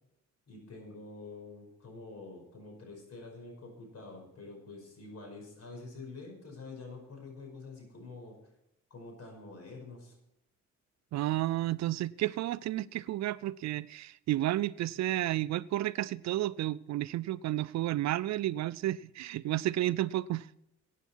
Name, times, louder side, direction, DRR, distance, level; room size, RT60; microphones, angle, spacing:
voice 1, 0.5-8.4 8.9-10.2, left 3 dB, 55° left, 5.4 m, -47 dB
voice 2, 11.1-20.5, right 14 dB, 65° right, 0.4 m, -32 dB
14.5 x 9.2 x 4.6 m
cardioid pair, 90°, 30 cm